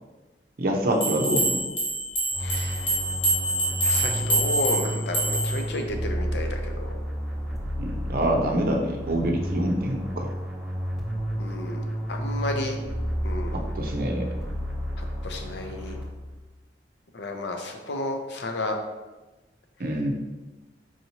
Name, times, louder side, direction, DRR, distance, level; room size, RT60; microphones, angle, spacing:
voice 1, 0.6-1.6 7.8-10.3 13.7-14.3 19.8-20.1, right 1 dB, 55° right, 1 dB, 0.6 m, -26 dB
sound 1, 1.0-5.7, right 1 dB, 30° left, 1.1 m, -26 dB
sound 2, 2.3-16.4, equal, ahead, 0.7 m, -31 dB
voice 2, 2.4-3.0 3.8-6.9 11.4-12.8 13.2-13.7 15.0-16.0 17.1-18.8, left 2 dB, 70° left, 4 dB, 0.5 m, -32 dB
4.8 x 2.8 x 2.8 m, 1.1 s
head